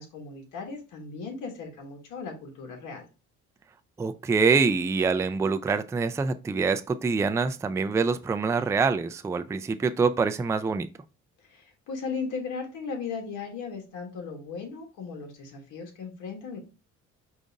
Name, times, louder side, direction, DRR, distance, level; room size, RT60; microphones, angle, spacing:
voice 1, 0.0-3.1 11.4-16.6, left 5 dB, 85° left, 1.3 m, -37 dB
voice 2, 4.0-10.9, right 4 dB, 10° right, 0.3 m, -25 dB
5.1 x 2.5 x 3.9 m
cardioid pair, 90°, 30 cm